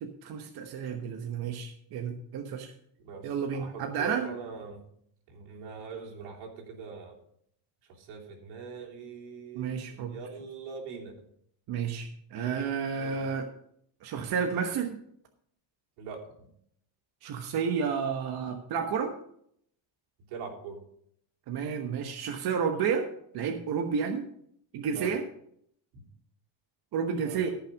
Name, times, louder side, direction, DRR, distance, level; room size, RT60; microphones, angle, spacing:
voice 1, 0.0-2.7 3.2-4.3 9.5-10.2 11.7-13.5 14.0-15.0 17.2-19.1 21.5-23.1 23.3-24.3 24.7-25.2 26.9-27.5, right 6 dB, 50° right, 4 dB, 1.1 m, -31 dB
voice 2, 3.0-4.8 5.3-7.1 8.0-11.1 13.0-13.2 16.0-16.2 20.3-20.8 24.8-25.1 27.2-27.4, right 5 dB, 85° right, -1 dB, 3.3 m, -42 dB
14.5 x 5.9 x 5.2 m, 0.69 s
cardioid pair, 145°, 48 cm